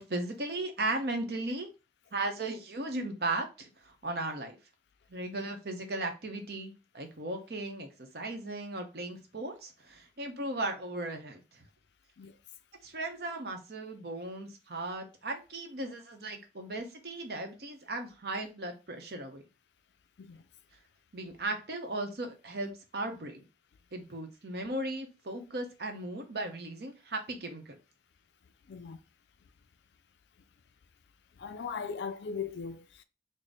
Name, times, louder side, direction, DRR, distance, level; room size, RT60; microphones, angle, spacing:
voice 1, 0.0-1.7 2.1-4.6 5.1-7.9 8.1-11.4 12.8-19.4 21.1-23.4 23.9-27.8, right 2 dB, 60° right, 0.8 m, -36 dB
voice 2, 31.4-33.0, left 6 dB, 70° left, 0.4 m, -38 dB
4.0 x 2.1 x 3.4 m
head